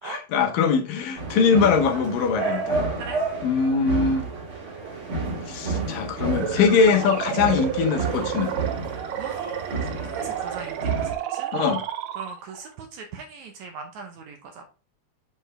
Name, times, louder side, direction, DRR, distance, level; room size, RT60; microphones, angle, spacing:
voice 1, 0.0-2.8 3.4-4.3 5.5-8.6 11.5-11.8, left 5 dB, 80° left, 2.7 m, -22 dB
sound 1, 1.1-11.1, right 4 dB, 45° right, 2.8 m, -30 dB
sound 2, 6.2-12.7, right 10 dB, 90° right, 1.5 m, -31 dB
voice 2, 9.8-11.5 12.2-14.7, right 4 dB, 70° right, 1.9 m, -39 dB
8.0 x 4.4 x 3.2 m
omnidirectional pair, 3.9 m